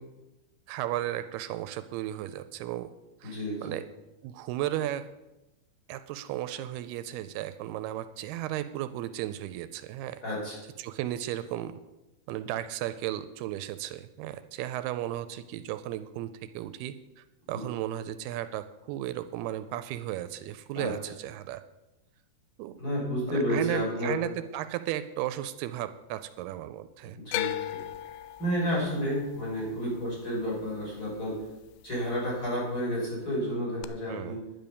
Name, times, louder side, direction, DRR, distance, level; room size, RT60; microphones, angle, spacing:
voice 1, 0.7-2.9 3.2-3.9 4.2-5.1 5.9-10.2 10.8-11.8 12.3-21.6 22.6-22.8 23.3-27.2 34.1-34.4, right 13 dB, 85° right, 12 dB, 2.6 m, -35 dB
voice 2, 3.2-3.8 10.2-10.6 17.5-17.7 20.7-20.9 22.8-24.2 27.1-27.8 28.4-31.4 31.8-34.4, equal, 20° left, -5 dB, 6.4 m, -31 dB
sound 1, 27.3-31.5 31.8-32.5 33.8-33.9, left 13 dB, 80° left, 2.4 m, -37 dB
11.0 x 10.5 x 7.0 m, 1.0 s
omnidirectional pair, 4.6 m